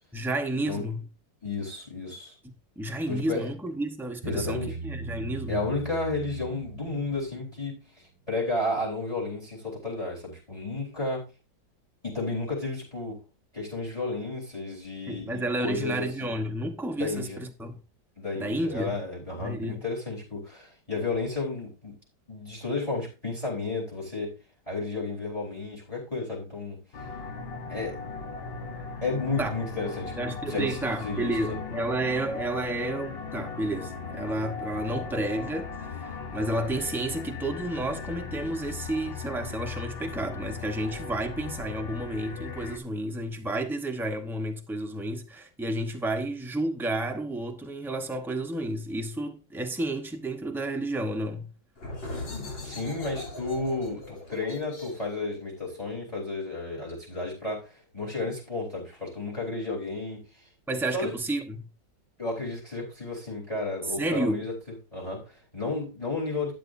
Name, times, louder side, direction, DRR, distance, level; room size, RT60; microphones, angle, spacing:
voice 1, 0.1-1.0 2.8-5.6 15.1-17.8 18.4-19.0 19.4-19.8 28.7-28.8 29.4-29.5 30.2-51.5 60.7-61.7 64.0-64.4, right 1 dB, ahead, 0.6 m, -31 dB
voice 2, 1.4-2.3 3.1-3.5 4.2-4.8 5.5-7.8 8.3-11.3 12.0-13.2 13.5-16.3 17.0-17.4 18.2-21.9 22.3-24.4 24.7-26.8 27.7-28.0 29.0-30.8 31.0-31.6 52.2-60.2 60.9-61.1 62.2-64.5 64.9-66.5, left 3 dB, 15° left, 4.0 m, -32 dB
Bass guitar, 4.2-7.6, right 3 dB, 20° right, 3.5 m, -38 dB
sound 1, 26.9-42.8, left 4 dB, 40° left, 0.9 m, -38 dB
sound 2, 51.8-57.2, left 2 dB, 75° left, 3.9 m, -40 dB
12.5 x 9.1 x 2.6 m
omnidirectional pair, 2.1 m